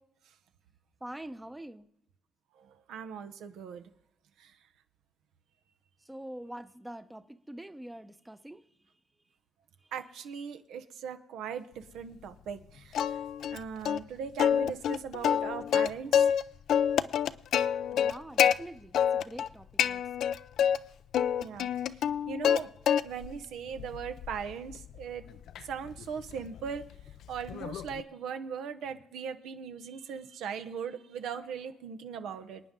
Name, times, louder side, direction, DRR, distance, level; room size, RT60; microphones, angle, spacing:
voice 1, 1.0-1.9 6.1-8.6 17.9-20.3, right 1 dB, 10° right, 11 dB, 0.7 m, -45 dB
voice 2, 2.6-3.9 4.4-4.5 9.9-13.2 13.5-16.3 21.4-22.7 23.0-25.2 25.6-26.9 27.3-32.6, right 7 dB, 80° right, 9 dB, 0.8 m, -39 dB
Plucked string instrument, 12.9-13.6 13.9-14.0 14.4-16.4 16.7-18.5 18.9-19.5 19.8-20.8 21.1-22.6 22.9-23.4 23.8-28.0, left 9 dB, 75° left, 0.4 m, -27 dB
27.5 x 9.2 x 3.7 m, 0.80 s
cardioid pair, 90°, 0 cm